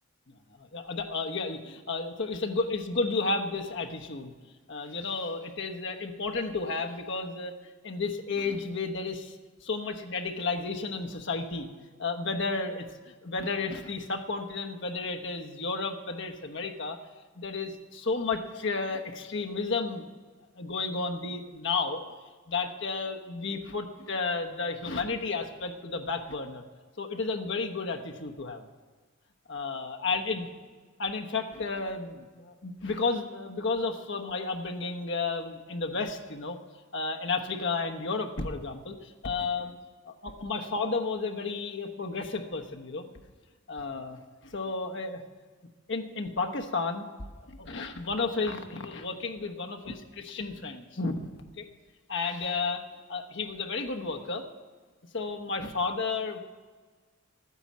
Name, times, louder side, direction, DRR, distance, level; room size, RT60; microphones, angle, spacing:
voice 1, 0.5-4.3 4.7-7.5 7.8-9.3 9.6-11.7 12.0-17.0 17.4-20.1 20.6-22.0 22.5-26.6 27.0-28.7 29.5-30.5 31.0-36.6 36.9-39.8 40.1-43.1 43.7-45.2 45.9-47.1 47.5-51.3 51.6-51.7 52.1-52.8 53.1-54.5 55.1-56.4, left 4 dB, 60° left, 4 dB, 1.1 m, -32 dB
12.5 x 9.8 x 7.4 m, 1.4 s
head